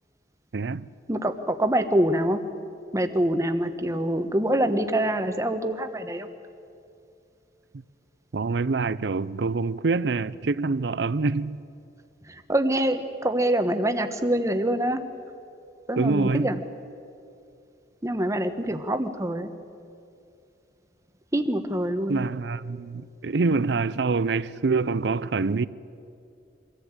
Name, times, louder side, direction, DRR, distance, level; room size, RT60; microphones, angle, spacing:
voice 1, 0.5-0.9 8.3-11.6 16.0-16.6 22.1-25.7, right 4 dB, 65° right, 0.5 m, -25 dB
voice 2, 1.1-2.4 2.9-6.3 12.2-15.0 15.9-16.6 18.0-19.5 21.3-22.3, right 1 dB, 15° right, 1.1 m, -25 dB
24.0 x 14.5 x 8.9 m
head